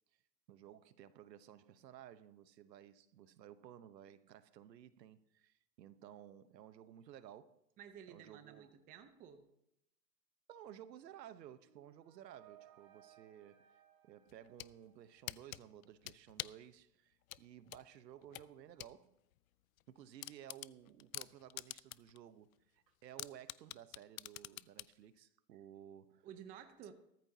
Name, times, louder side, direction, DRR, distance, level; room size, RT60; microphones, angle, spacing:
voice 1, 0.5-7.6 8.1-8.7 10.5-13.7 14.0-19.2 19.9-26.3, right 10 dB, 75° right, 1.1 m, -56 dB
voice 2, 7.8-9.5 26.2-26.9, right 8 dB, 15° right, 0.7 m, -54 dB
Flute Musical Orgasm, 11.6-15.5, right 11 dB, 60° right, 2.7 m, -65 dB
sound 1, 14.3-14.7 15.3-16.7 17.3-18.9 19.3-19.4 19.8-19.9 20.2-22.2 22.5-22.6 23.2-24.9, left 16 dB, 60° left, 0.5 m, -46 dB
18.5 x 13.5 x 2.8 m
hypercardioid pair, 145°, 50 cm